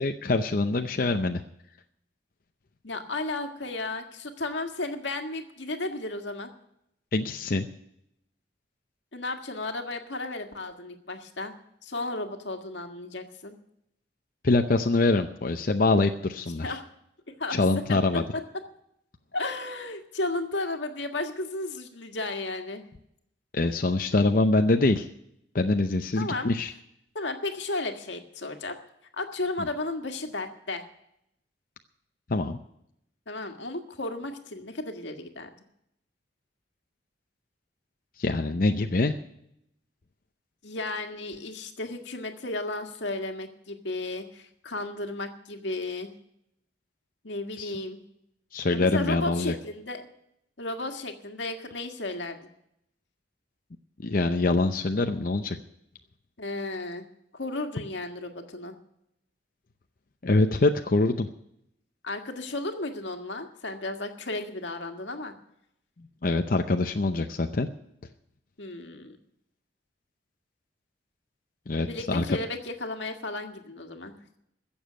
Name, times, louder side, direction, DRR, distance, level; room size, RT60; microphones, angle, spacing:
voice 1, 0.0-1.4 7.1-7.7 14.4-16.8 17.5-18.2 23.5-25.1 25.5-26.7 32.3-32.6 38.2-39.2 47.6-47.7 48.5-49.5 54.0-55.6 60.2-61.3 66.2-67.7 71.7-72.4, left 2 dB, 50° left, 5 dB, 0.7 m, -24 dB
voice 2, 2.8-6.5 9.1-11.5 11.8-13.5 16.6-16.9 17.4-17.6 17.9-18.0 18.3-18.6 19.3-22.8 26.2-26.5 27.1-28.7 29.2-30.8 33.3-35.5 40.6-46.1 47.2-48.0 48.7-50.1 50.6-52.5 56.4-57.0 57.3-58.7 62.0-65.3 68.6-69.2 71.9-74.4, left 2 dB, 85° left, 5 dB, 1.7 m, -34 dB
15.5 x 7.2 x 9.3 m, 0.76 s
head